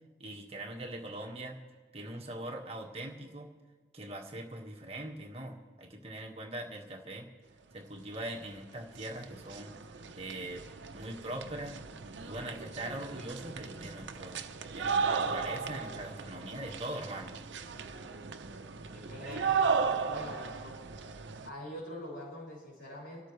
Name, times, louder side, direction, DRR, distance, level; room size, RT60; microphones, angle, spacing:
voice 1, 0.2-1.6 1.9-3.5 3.9-7.3 7.7-9.8 10.1-10.7 10.9-11.8 12.2-14.4 14.8-17.4, right 1 dB, 35° right, 0 dB, 1.7 m, -41 dB
sound 1, 8.4-8.5 8.8-21.5, right 5 dB, 80° right, 0.8 m, -36 dB
voice 2, 18.9-20.8 21.4-23.3, equal, 85° left, -7 dB, 6.4 m, -44 dB
28.0 x 12.5 x 3.3 m, 1.4 s
head